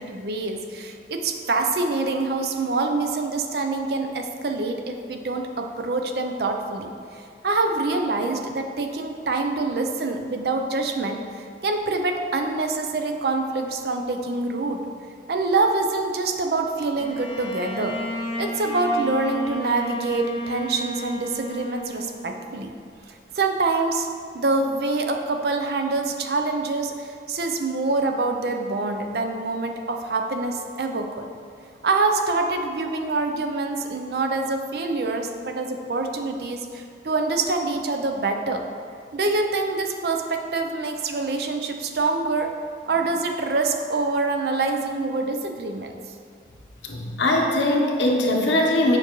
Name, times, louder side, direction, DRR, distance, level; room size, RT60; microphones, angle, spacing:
voice 1, 0.0-14.8 15.3-18.0 18.4-22.7 23.1-24.1 24.3-31.3 31.8-38.6 39.1-42.5 42.9-46.0, right 3 dB, 60° right, 4 dB, 0.5 m, -25 dB
Bowed string instrument, 17.0-22.7, equal, 30° left, 0.6 m, -33 dB
voice 2, 46.8-49.0, left 1 dB, 85° left, 1 dB, 0.8 m, -21 dB
7.0 x 5.2 x 3.0 m, 2.3 s
head